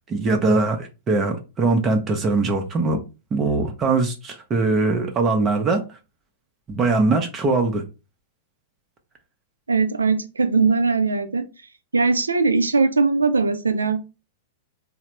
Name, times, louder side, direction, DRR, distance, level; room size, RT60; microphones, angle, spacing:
voice 1, 0.1-3.0 3.3-5.8 6.7-7.8, right 3 dB, 30° right, 0.6 m, -21 dB
voice 2, 9.7-11.4 11.9-14.0, right 4 dB, 90° right, 0.4 m, -20 dB
3.2 x 2.0 x 2.9 m
hypercardioid pair, 105°, 0 cm